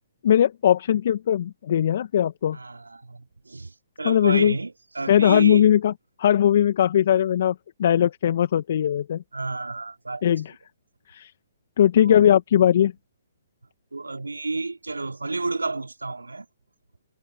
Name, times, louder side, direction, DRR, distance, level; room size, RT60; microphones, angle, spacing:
voice 1, 0.2-2.6 4.0-4.6 5.1-5.9 6.2-9.2 10.2-10.5 11.1-11.3 11.8-12.9, left 10 dB, 55° left, 1.4 m, -19 dB
voice 2, 2.5-3.7 4.0-5.7 9.3-10.4 12.0-12.3 13.9-16.4, right 3 dB, 90° right, 3.3 m, -31 dB
figure-of-eight pair, 130°, 0 cm